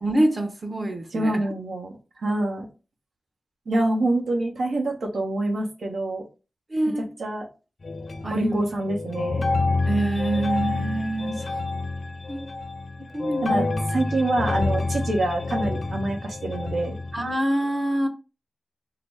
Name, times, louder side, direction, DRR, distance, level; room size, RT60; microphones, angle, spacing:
voice 1, 0.0-1.4 6.7-7.1 8.2-8.6 9.8-11.5 12.3-12.5 13.1-13.7 17.1-18.1, right 1 dB, 35° right, 0.8 m, -25 dB
voice 2, 1.1-2.7 3.7-6.2 7.0-7.5 8.3-9.4 13.4-17.0, right 2 dB, 80° right, 0.9 m, -26 dB
sound 1, 7.8-8.6 8.9-17.3, left 3 dB, 50° left, 0.5 m, -28 dB
3.9 x 2.0 x 3.3 m
wide cardioid pair, 80°, 0 cm